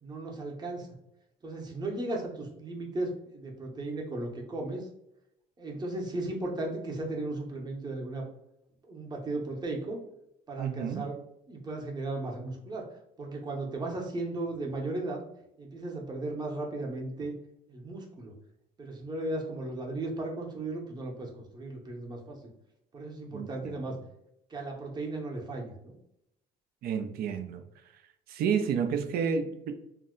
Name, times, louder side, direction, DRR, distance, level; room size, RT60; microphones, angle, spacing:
voice 1, 0.0-0.9 1.4-4.9 5.6-8.3 8.9-10.0 10.5-11.2 11.5-12.9 13.2-15.2 15.6-17.3 17.7-18.3 18.8-22.4 22.9-23.9 24.5-25.9, right 2 dB, 25° right, 0 dB, 0.8 m, -36 dB
voice 2, 10.6-11.0 23.3-23.8 26.8-27.6 28.3-29.8, right 7 dB, 65° right, 8 dB, 0.4 m, -30 dB
2.7 x 2.1 x 3.6 m, 0.81 s
cardioid pair, 110°, 17 cm